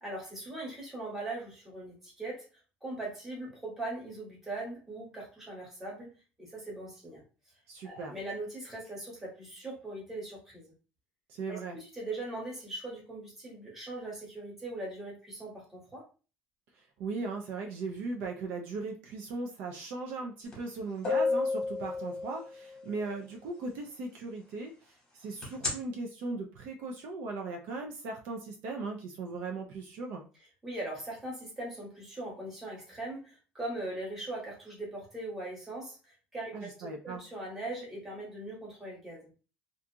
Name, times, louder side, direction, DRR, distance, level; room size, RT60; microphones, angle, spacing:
voice 1, 0.0-2.4 2.8-7.2 7.8-10.7 11.5-16.0 30.6-39.3, right 2 dB, 10° right, -4 dB, 1.0 m, -40 dB
voice 2, 7.7-8.1 11.3-11.8 17.0-30.2 36.5-37.2, right 3 dB, 60° right, 2 dB, 0.4 m, -38 dB
sound 1, 20.5-20.6 21.0-22.8 25.4-25.7, left 3 dB, 20° left, 1.0 m, -30 dB
2.5 x 2.3 x 2.7 m, 0.34 s
cardioid pair, 175°, 4 cm